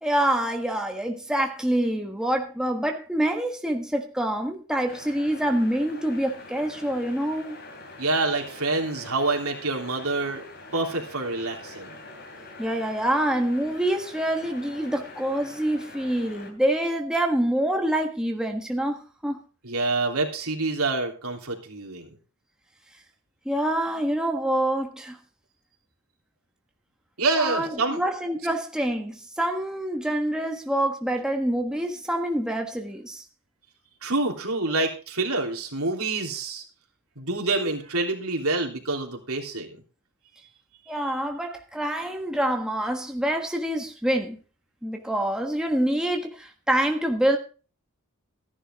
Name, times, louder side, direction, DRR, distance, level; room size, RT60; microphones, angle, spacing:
voice 1, 0.0-7.6 12.6-19.4 23.4-25.2 27.4-33.2 40.9-44.4 44.8-47.4, right 1 dB, 5° right, 1.4 m, -26 dB
sound 1, 4.9-16.5, left 2 dB, 50° left, 3.1 m, -44 dB
voice 2, 8.0-10.4 10.7-12.0 19.6-22.1 27.2-28.0 34.0-36.6 37.2-39.8, right 3 dB, 80° right, 3.3 m, -27 dB
14.0 x 11.0 x 3.7 m
head